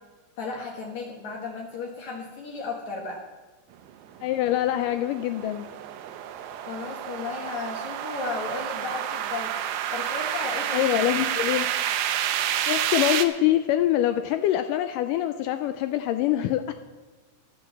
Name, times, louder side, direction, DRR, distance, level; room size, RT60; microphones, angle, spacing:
voice 1, 0.4-3.2 6.7-11.1, left 4 dB, 60° left, -1 dB, 2.4 m, -34 dB
voice 2, 4.2-5.6 10.7-11.7 12.7-16.7, left 13 dB, 80° left, 9 dB, 1.9 m, -24 dB
sound 1, 4.2-13.3, right 10 dB, 85° right, 2.7 m, -29 dB
12.5 x 8.4 x 7.3 m, 1.3 s
omnidirectional pair, 4.2 m